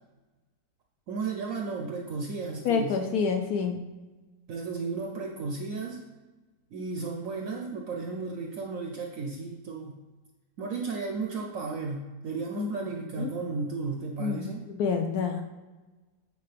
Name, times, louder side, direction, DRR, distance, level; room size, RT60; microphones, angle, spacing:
voice 1, 1.1-3.0 4.5-6.0 6.7-10.0 10.6-14.7, right 4 dB, 65° right, 2 dB, 0.9 m, -34 dB
voice 2, 2.6-3.8 12.6-13.3 14.2-14.5 14.8-15.4, left 6 dB, 70° left, 5 dB, 1.0 m, -28 dB
8.3 x 4.6 x 3.4 m, 1.2 s
omnidirectional pair, 1.7 m